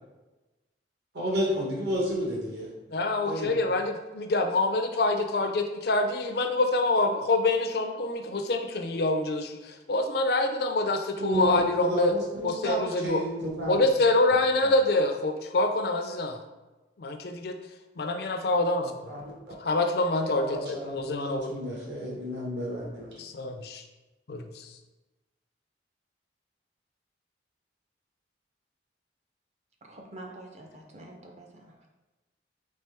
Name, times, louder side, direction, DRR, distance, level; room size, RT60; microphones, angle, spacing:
voice 1, 1.1-2.7 3.2-3.5 11.2-13.8 14.6-14.7 19.1-19.3 20.3-23.1, equal, 65° right, -4 dB, 1.3 m, -31 dB
voice 2, 2.9-9.6 9.9-12.1 12.4-13.2 13.7-16.4 17.0-17.5 18.0-19.1 19.6-21.6 23.2-23.8 24.3-24.5, left 2 dB, 55° left, 6 dB, 0.4 m, -26 dB
voice 3, 29.8-31.9, right 1 dB, 35° right, 1 dB, 0.6 m, -46 dB
4.3 x 3.3 x 3.4 m, 1.1 s
head